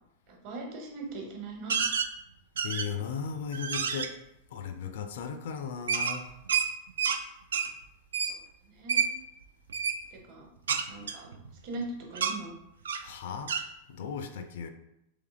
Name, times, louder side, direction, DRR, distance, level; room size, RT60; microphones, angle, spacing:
voice 1, 0.3-1.7 8.3-8.4 8.7-9.1 10.1-10.5 10.9-11.3 11.6-12.5, right 2 dB, 45° right, 1.2 m, -40 dB
sound 1, 1.7-2.1 2.6-3.1 3.5-4.1 5.9-7.2 7.5-7.7 8.1-8.4 8.9-9.1 9.7-10.0 10.7-11.8 12.2-12.4 12.9-13.1 13.5-13.7, right 6 dB, 65° right, 0.4 m, -29 dB
voice 2, 2.6-4.1 4.5-6.3 13.0-13.5 13.9-14.7, left 6 dB, 55° left, 0.4 m, -36 dB
3.5 x 3.3 x 3.5 m
figure-of-eight pair, 90°, 0 cm